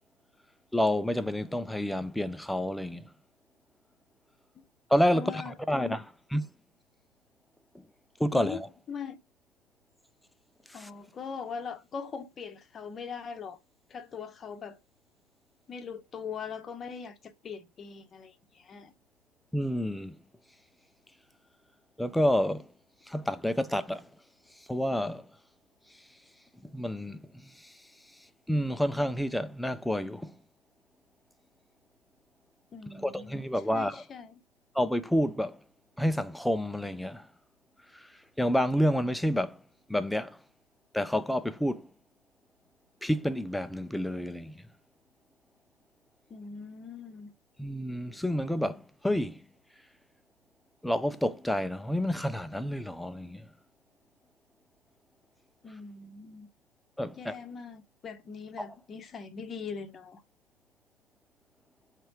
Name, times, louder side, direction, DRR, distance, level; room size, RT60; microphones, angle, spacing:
voice 1, 0.7-3.0 4.9-6.0 6.3-6.4 8.2-8.7 10.7-10.9 19.5-20.2 22.0-22.7 23.1-24.1 24.7-25.3 26.7-27.7 28.5-30.3 32.9-34.0 34.7-35.6 36.0-37.3 37.9-38.1 38.4-39.6 39.9-40.4 40.9-41.9 43.0-44.6 47.6-49.4 50.8-53.5 57.0-57.4 58.6-58.7, equal, 5° left, 0.4 m, -29 dB
voice 2, 5.1-6.0 8.3-8.6 8.9-9.2 10.7-13.6 13.9-14.8 15.7-18.9 32.7-33.4 33.7-34.4 46.3-47.3 55.6-56.5 57.2-60.2, left 6 dB, 25° left, 0.8 m, -41 dB
3.3 x 3.2 x 4.4 m
figure-of-eight pair, 95°, 0 cm